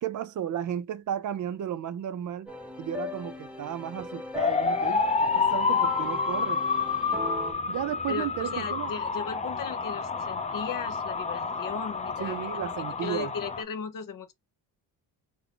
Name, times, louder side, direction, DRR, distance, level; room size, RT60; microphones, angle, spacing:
voice 1, 0.0-2.5 2.8-6.6 7.7-8.9 12.2-13.3, right 10 dB, 50° right, 0.5 m, -34 dB
sound 1, 2.5-7.5, left 2 dB, 5° right, 1.1 m, -39 dB
sound 2, 4.3-13.6, left 5 dB, 20° left, 0.5 m, -29 dB
voice 2, 8.1-12.5 13.0-14.3, left 6 dB, 50° left, 0.9 m, -37 dB
3.5 x 2.1 x 3.7 m
cardioid pair, 135°, 41 cm